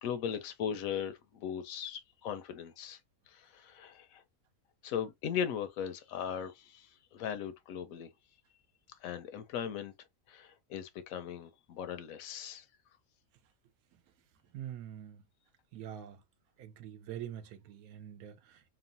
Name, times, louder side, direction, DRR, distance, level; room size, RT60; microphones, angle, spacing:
voice 1, 0.0-3.0 3.3-4.2 4.8-8.1 9.0-9.9 10.3-12.6, left 8 dB, 75° left, 0.9 m, -38 dB
voice 2, 14.5-15.2 15.7-16.2 16.6-18.7, right 10 dB, 80° right, 1.0 m, -45 dB
3.0 x 2.1 x 2.6 m
omnidirectional pair, 1.5 m